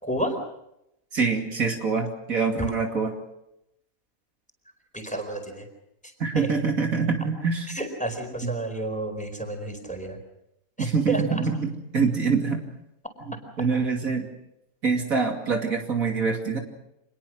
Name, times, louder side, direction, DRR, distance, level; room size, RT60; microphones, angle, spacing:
voice 1, 0.0-0.4 4.9-5.7 6.3-6.5 7.7-10.2 10.8-11.2, right 1 dB, 5° left, 4 dB, 4.7 m, -31 dB
voice 2, 1.1-3.1 6.2-7.7 8.4-8.5 10.8-12.6 13.3-14.3 14.8-16.6, right 5 dB, 70° right, 2 dB, 3.1 m, -25 dB
26.5 x 21.0 x 6.4 m, 0.84 s
omnidirectional pair, 1.5 m